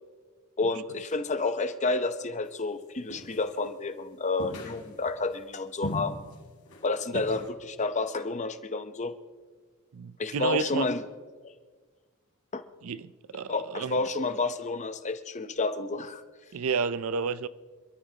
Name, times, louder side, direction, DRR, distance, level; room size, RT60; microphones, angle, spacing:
voice 1, 0.6-6.2 6.8-9.1 10.2-11.0 12.5-12.6 13.5-16.2, left 3 dB, 30° left, 0.7 m, -30 dB
sound 1, 3.1-3.7 4.4-5.2 5.8-6.4 6.7-6.8 7.1-7.5, equal, 70° left, 3.2 m, -38 dB
voice 2, 9.9-10.9 12.8-14.0 16.5-17.5, right 5 dB, 70° right, 0.5 m, -31 dB
27.0 x 13.0 x 2.9 m
head